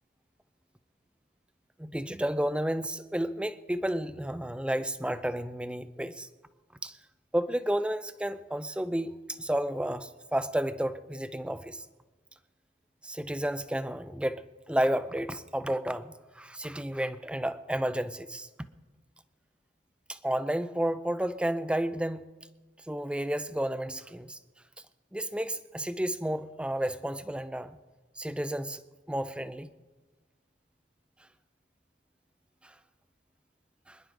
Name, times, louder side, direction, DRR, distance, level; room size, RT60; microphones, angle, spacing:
voice 1, 1.8-6.3 6.8-6.9 7.3-11.8 13.0-18.5 20.1-22.3 22.9-24.4 25.1-27.8 28.2-28.8 29.1-29.7 32.6-32.7 33.9-34.0, right 1 dB, 5° right, 12 dB, 0.5 m, -31 dB
26.5 x 10.5 x 3.8 m, 1.3 s
head